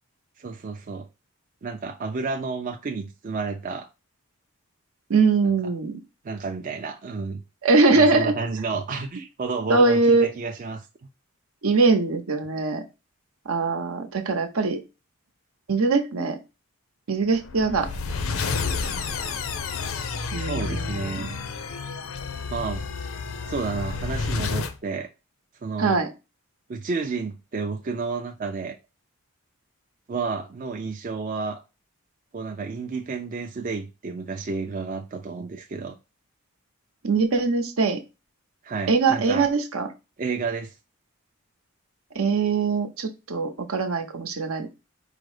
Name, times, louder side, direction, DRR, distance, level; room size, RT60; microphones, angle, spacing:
voice 1, 0.4-1.1 1.6-3.9 5.4-5.6 6.2-7.4 7.9-10.9 20.4-21.3 22.5-22.8 23.5-25.1 25.6-26.0 26.7-28.8 30.1-31.6 32.3-36.0 38.6-39.5 40.2-40.7, right 4 dB, 35° right, 0.4 m, -31 dB
voice 2, 5.1-5.9 7.6-8.4 9.7-10.3 11.6-12.8 13.5-14.8 15.7-16.4 17.1-17.9 20.3-21.0 25.8-26.1 37.0-38.0 38.9-39.9 42.1-44.7, right 4 dB, 75° right, 0.8 m, -22 dB
sound 1, 17.3-24.8, left 4 dB, 70° left, 0.5 m, -30 dB
4.8 x 2.0 x 4.7 m
head